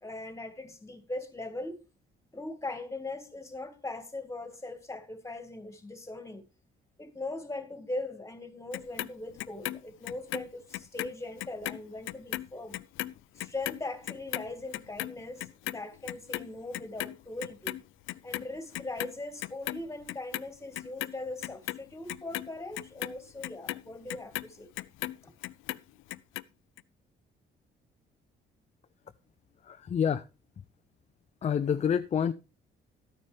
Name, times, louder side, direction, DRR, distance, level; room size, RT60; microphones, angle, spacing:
voice 1, 0.0-1.8 2.3-6.4 7.0-12.8 13.4-17.8 18.2-24.7 25.2-25.3, left 2 dB, 15° left, 1.9 m, -40 dB
Clock, 8.7-11.1 11.4-17.8 18.1-19.1 19.4-20.4 20.7-25.2 25.4-26.4 26.8-26.9, left 16 dB, 85° left, 0.4 m, -37 dB
voice 2, 29.6-30.2 31.4-32.3, left 8 dB, 35° left, 0.5 m, -27 dB
12.5 x 9.6 x 3.4 m
cardioid pair, 90°, 20 cm